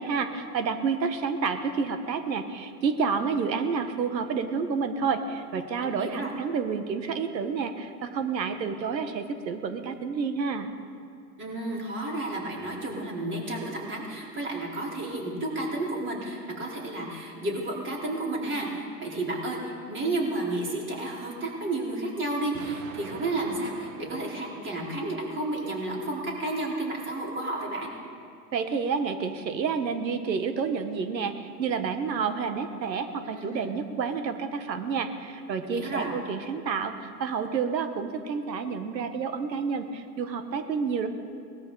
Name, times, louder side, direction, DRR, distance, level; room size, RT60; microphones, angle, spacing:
voice 1, 0.0-10.7 28.5-41.1, right 5 dB, 85° right, 9 dB, 1.4 m, -29 dB
voice 2, 5.8-6.3 11.4-27.9 33.2-33.7 35.6-36.1, right 2 dB, 25° right, -2 dB, 3.8 m, -32 dB
Explosion, 22.5-25.5, right 7 dB, 60° right, 1.2 m, -46 dB
19.0 x 13.5 x 3.9 m, 2.5 s
hypercardioid pair, 110°, 50 cm